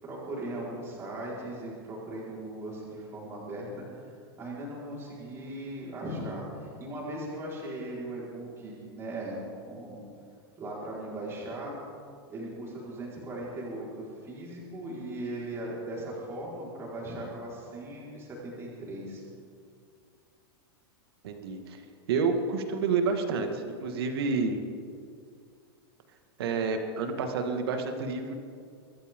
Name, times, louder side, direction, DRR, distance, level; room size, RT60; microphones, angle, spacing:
voice 1, 0.0-4.1 4.4-10.0 10.6-11.8 12.3-19.2, right 1 dB, 20° right, -5 dB, 4.9 m, -38 dB
voice 2, 21.2-21.8 22.1-24.6 26.4-28.3, right 4 dB, 70° right, 5 dB, 2.1 m, -29 dB
24.0 x 14.5 x 3.8 m, 2.2 s
supercardioid pair, 155°, 13 cm